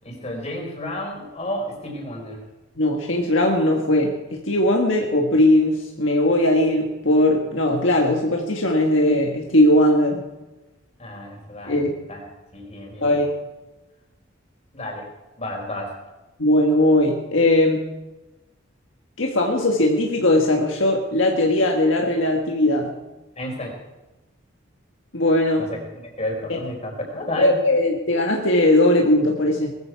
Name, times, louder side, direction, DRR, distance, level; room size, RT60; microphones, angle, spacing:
voice 1, 0.0-2.4 11.0-13.2 14.7-15.1 15.4-16.0 23.3-23.8 25.6-27.6, left 1 dB, 30° left, 0 dB, 4.7 m, -32 dB
voice 2, 2.8-10.3 11.7-11.9 13.0-13.3 16.4-17.8 19.2-22.9 25.1-25.7 26.5-26.6 27.4-29.7, left 1 dB, 65° left, 1 dB, 1.8 m, -19 dB
20.0 x 14.5 x 4.8 m, 1.1 s
head